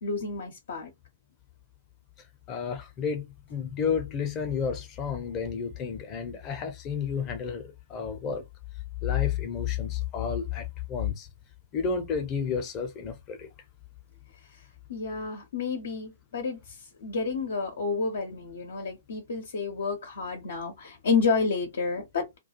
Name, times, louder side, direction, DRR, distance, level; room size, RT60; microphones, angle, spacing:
voice 1, 0.0-0.9 14.5-14.6 14.9-22.3, left 4 dB, 60° left, 0.7 m, -30 dB
voice 2, 2.5-8.4 9.0-11.3 11.7-13.5, left 7 dB, 25° left, 0.7 m, -31 dB
2.3 x 2.3 x 2.8 m
figure-of-eight pair, 120°, 0 cm